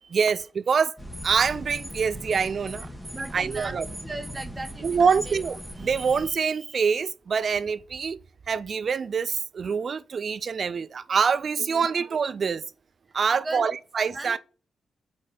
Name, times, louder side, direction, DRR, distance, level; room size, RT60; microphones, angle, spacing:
sound 1, 1.0-6.3, equal, ahead, 1.5 m, -39 dB
voice 1, 1.2-2.9 3.3-3.8 4.8-8.2 8.5-12.6 13.1-14.4, right 6 dB, 60° right, 0.4 m, -25 dB
voice 2, 3.1-5.4 11.6-11.9 13.1-13.7 14.1-14.4, right 2 dB, 30° right, 1.2 m, -38 dB
5.0 x 4.1 x 5.7 m
supercardioid pair, 45°, 0 cm